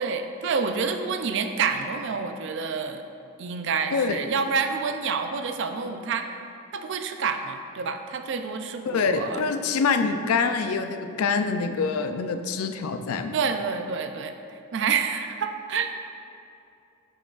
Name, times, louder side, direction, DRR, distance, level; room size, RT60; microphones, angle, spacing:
voice 1, 0.0-3.0 3.4-6.3 6.7-9.4 13.3-14.3 14.7-15.9, right 5 dB, 55° right, 6 dB, 0.4 m, -28 dB
voice 2, 3.9-4.2 8.9-13.3, left 5 dB, 90° left, 7 dB, 0.4 m, -25 dB
7.0 x 6.0 x 2.4 m, 2.7 s
head